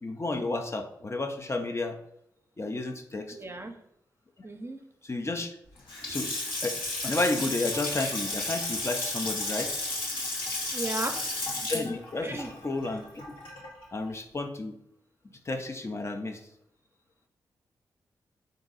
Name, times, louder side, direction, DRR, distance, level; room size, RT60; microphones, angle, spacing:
voice 1, 0.0-2.0 2.6-3.4 5.0-5.5 6.1-6.3 6.6-6.8 7.0-9.7 11.7-13.2 13.9-14.7 15.5-16.4, left 2 dB, 35° left, 6 dB, 0.5 m, -31 dB
voice 2, 3.3-3.7 4.4-4.8 10.7-11.2 12.2-12.5, right 2 dB, 30° right, 5 dB, 0.7 m, -34 dB
Water tap faucet / Sink (filling or washing) / Splash splatter, 5.8-13.8, left 2 dB, 80° left, 1.3 m, -33 dB
3.9 x 2.7 x 3.9 m, 0.75 s
supercardioid pair, 40°, 8 cm